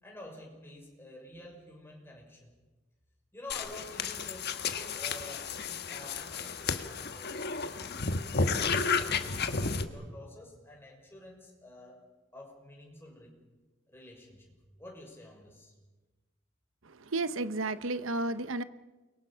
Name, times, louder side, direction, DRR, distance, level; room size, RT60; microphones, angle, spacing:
voice 1, 0.0-2.5 3.3-7.8 8.3-12.0 12.3-13.4 13.9-15.7, left 1 dB, 10° left, -1 dB, 6.2 m, -49 dB
sound 1, 3.5-9.9, left 4 dB, 55° left, 1.5 m, -32 dB
voice 2, 16.8-18.6, right 2 dB, 75° right, 13 dB, 0.9 m, -32 dB
29.5 x 22.5 x 5.7 m, 1.2 s
head